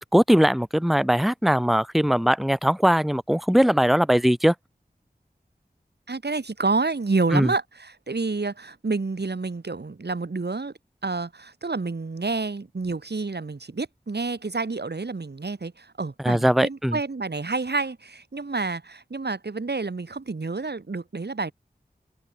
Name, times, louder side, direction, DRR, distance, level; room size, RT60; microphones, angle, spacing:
voice 1, 0.1-4.5 7.3-7.5 16.2-17.0, equal, ahead, 1.4 m, -20 dB
voice 2, 6.1-10.7 11.0-21.5, right 3 dB, 80° right, 4.4 m, -29 dB
open air
wide cardioid pair, 55°, 17 cm